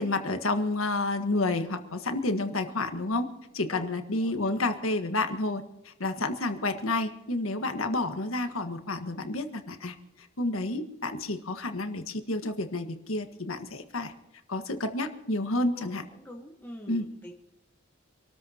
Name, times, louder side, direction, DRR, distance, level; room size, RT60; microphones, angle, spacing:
voice 1, 0.0-3.3 3.5-14.1 14.5-16.0 16.9-17.1, left 2 dB, 85° left, 7 dB, 1.6 m, -30 dB
voice 2, 15.8-17.3, equal, 10° left, -1 dB, 1.3 m, -45 dB
27.0 x 13.5 x 2.9 m, 0.95 s
head